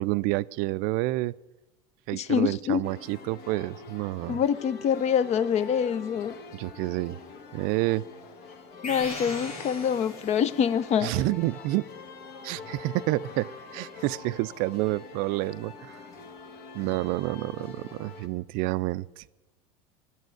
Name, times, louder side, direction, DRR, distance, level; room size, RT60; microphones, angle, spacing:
voice 1, 0.0-1.3 2.1-4.4 6.5-7.2 7.5-8.0 11.0-11.9 12.4-16.0 16.7-19.2, right 19 dB, 55° right, 0.4 m, -29 dB
voice 2, 2.1-2.8 4.3-6.3 8.8-11.1, left 8 dB, 40° left, 0.6 m, -25 dB
sound 1, 2.8-18.3, left 4 dB, 60° left, 1.5 m, -45 dB
sound 2, 8.8-10.7, left 2 dB, 90° left, 2.2 m, -38 dB
11.0 x 8.3 x 9.1 m
hypercardioid pair, 80°, 18 cm